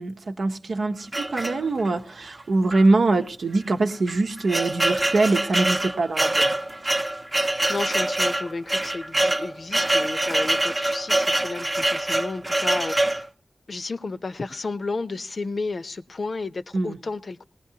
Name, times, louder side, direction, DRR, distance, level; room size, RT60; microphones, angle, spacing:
voice 1, 0.0-6.6 16.7-17.0, right 3 dB, 85° right, 0.9 m, -23 dB
sound 1, 1.1-2.0 2.7-2.8 3.1-3.2 3.9-13.3, right 1 dB, 25° right, 0.7 m, -24 dB
voice 2, 7.7-13.3 13.7-17.4, left 3 dB, 60° left, 0.6 m, -32 dB
20.5 x 18.5 x 2.8 m
wide cardioid pair, 90°, 0 cm